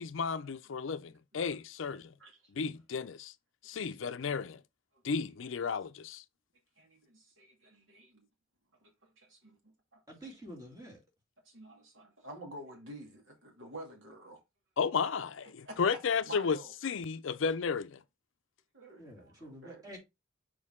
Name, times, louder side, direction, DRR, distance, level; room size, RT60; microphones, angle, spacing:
voice 1, 0.0-2.1 2.5-3.3 3.6-4.6 5.0-6.2 14.8-16.6 16.8-18.0, left 5 dB, 75° left, 0.5 m, -33 dB
voice 2, 6.8-8.3 8.8-9.3 9.9-10.3 11.4-14.4 15.6-15.8 16.2-16.7 18.7-19.8, right 1 dB, 75° right, 2.3 m, -50 dB
voice 3, 10.1-11.0 19.0-20.0, equal, 20° right, 2.6 m, -48 dB
6.5 x 4.5 x 3.6 m
head